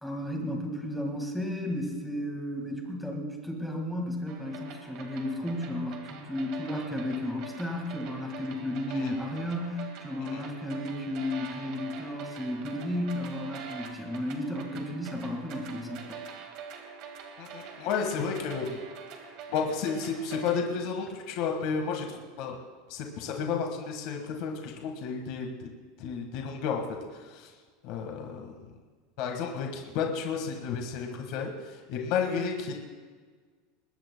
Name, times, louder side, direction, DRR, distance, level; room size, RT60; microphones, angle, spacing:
voice 1, 0.0-16.5, left 1 dB, ahead, 1 dB, 1.8 m, -33 dB
sound 1, 4.3-20.6, right 6 dB, 40° right, 1.9 m, -44 dB
voice 2, 17.4-18.9 19.5-22.5 22.9-25.7 26.0-26.8 27.1-27.5 27.8-28.5 29.2-32.7, left 6 dB, 45° left, 2 dB, 1.6 m, -32 dB
22.0 x 19.5 x 2.2 m, 1.5 s
supercardioid pair, 175°, 0 cm